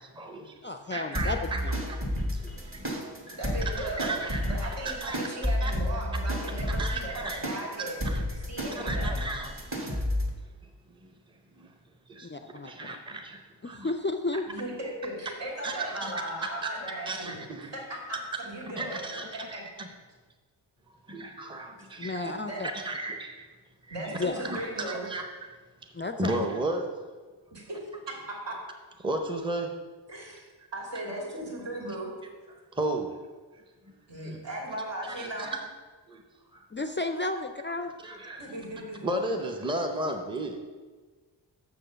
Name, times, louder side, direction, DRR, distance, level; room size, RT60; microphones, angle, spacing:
voice 1, 0.0-2.0 2.2-4.6 4.8-5.3 5.6-5.7 6.7-7.4 8.0-10.2 10.6-11.7 12.1-13.9 14.3-14.4 15.6-16.2 16.6-16.7 17.1-17.7 18.1-18.2 18.8-19.9 20.9-22.3 22.7-23.5 23.8-25.5 25.8-25.9 26.2-27.1 29.0-29.8 32.5-33.2 33.5-34.0 34.2-34.4 35.0-35.6 36.1-36.2 36.5-36.7 38.0-38.6 39.0-40.6, right 2 dB, 10° right, 3 dB, 0.7 m, -35 dB
voice 2, 0.6-1.4 1.6-1.7 12.3-12.7 13.6-14.4 22.0-22.7 24.2-24.4 25.9-26.5 36.7-37.9, left 2 dB, 30° left, 7 dB, 0.3 m, -32 dB
sound 1, 1.1-10.3, left 1 dB, 30° right, 1.4 m, -31 dB
voice 3, 3.4-4.2 4.5-8.0 8.5-9.3 14.5-17.5 17.7-19.6 22.5-22.6 23.9-25.1 27.5-27.8 28.4-28.5 30.1-30.4 30.7-32.1 34.1-35.5 38.4-39.4, right 1 dB, 75° right, -3 dB, 3.0 m, -37 dB
7.0 x 6.2 x 6.7 m, 1.4 s
wide cardioid pair, 160°, 44 cm